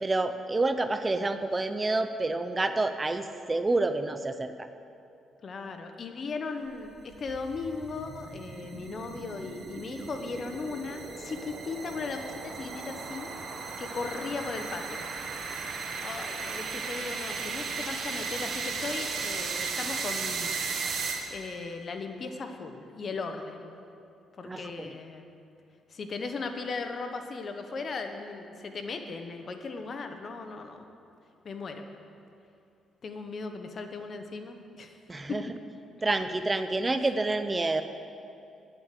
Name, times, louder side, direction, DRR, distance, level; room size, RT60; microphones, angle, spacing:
voice 1, 0.0-4.7 24.4-24.9 35.1-35.4 36.0-37.8, right 2 dB, 25° right, 9 dB, 0.6 m, -28 dB
voice 2, 5.4-13.3 13.8-15.0 15.4-20.5 21.3-23.8 24.4-25.3 25.9-30.9 31.4-31.9 33.0-35.0, left 4 dB, 45° left, 6 dB, 1.1 m, -37 dB
sound 1, 6.8-21.6, right 5 dB, 65° right, 1.3 m, -36 dB
9.8 x 8.9 x 6.8 m, 2.6 s
cardioid pair, 90°, 0 cm